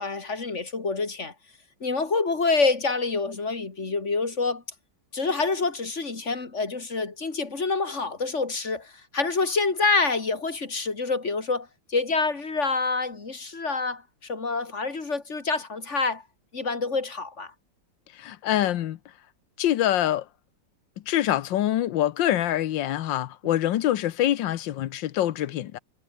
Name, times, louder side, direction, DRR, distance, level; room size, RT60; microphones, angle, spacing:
voice 1, 0.0-1.3 1.8-4.6 5.1-16.2 16.5-17.5, left 4 dB, 40° left, 3.0 m, -27 dB
voice 2, 18.2-19.0 19.6-20.2 21.1-25.8, left 12 dB, 80° left, 1.5 m, -25 dB
omnidirectional pair, 2.0 m